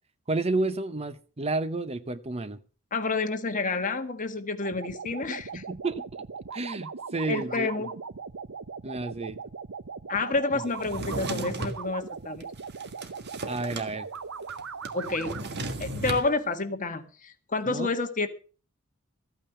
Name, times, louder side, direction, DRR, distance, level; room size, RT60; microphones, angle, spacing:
voice 1, 0.3-2.6 5.5-6.2 6.5-7.9 8.8-9.4 13.5-14.1 17.7-17.9, right 2 dB, 30° right, 13 dB, 0.8 m, -31 dB
voice 2, 2.9-5.6 7.3-7.9 10.1-12.5 14.9-15.4 15.8-18.3, left 3 dB, 40° left, 7 dB, 1.6 m, -29 dB
sound 1, 4.6-15.4, right 5 dB, 70° right, 0.8 m, -40 dB
Drawer open or close, 10.8-11.8 12.4-13.9 14.2-14.3 14.5-16.3, right 2 dB, 55° right, 1.7 m, -35 dB
14.5 x 9.0 x 6.6 m, 0.38 s
head